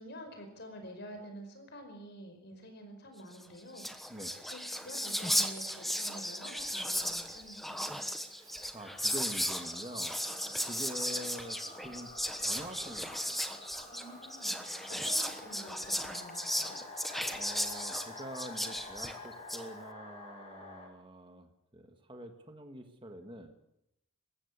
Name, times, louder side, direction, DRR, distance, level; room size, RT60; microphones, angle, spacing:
voice 1, 0.0-4.1 4.4-7.9 13.9-16.8, equal, 50° left, 5 dB, 5.2 m, -48 dB
Whispering, 3.4-3.5 3.7-19.7, equal, ahead, 1.2 m, -35 dB
voice 2, 8.3-10.2 10.6-12.1 12.4-13.4 14.9-15.2 17.3-23.5, equal, 25° right, 6 dB, 1.6 m, -46 dB
sound 1, 8.8-20.9, left 3 dB, 30° left, 4.9 m, -49 dB
20.5 x 15.5 x 8.4 m, 0.81 s
head